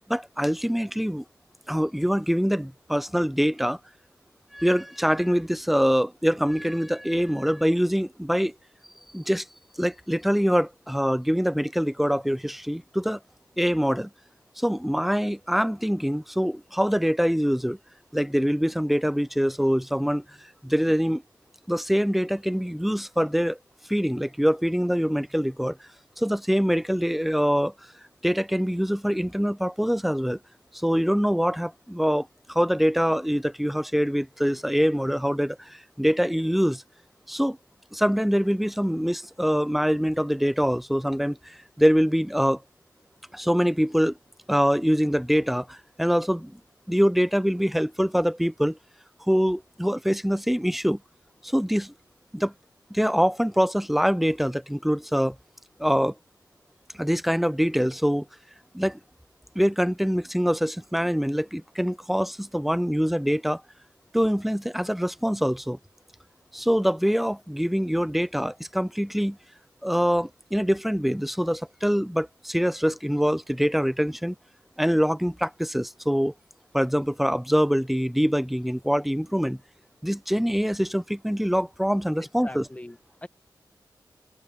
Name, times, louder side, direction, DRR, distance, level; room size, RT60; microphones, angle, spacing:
voice 1, 0.1-1.2 1.7-3.8 4.5-8.5 9.1-9.5 9.8-13.2 13.6-14.1 14.6-17.8 18.1-20.2 20.6-21.2 21.7-23.6 23.9-25.8 26.2-27.7 28.2-30.4 30.7-36.8 37.3-37.6 37.9-42.6 43.3-44.2 44.5-46.6 46.9-48.8 49.3-51.0 51.4-51.9 52.3-52.5 52.9-55.4 55.8-56.1 56.9-58.3 58.7-59.0 59.5-63.6 64.1-65.8 66.5-69.4 69.8-74.4 74.8-76.3 76.7-79.6 80.0-82.7, equal, ahead, 0.7 m, -24 dB
voice 2, 82.4-83.3, left 1 dB, 15° left, 2.0 m, -41 dB
cardioid pair, 50°, 8 cm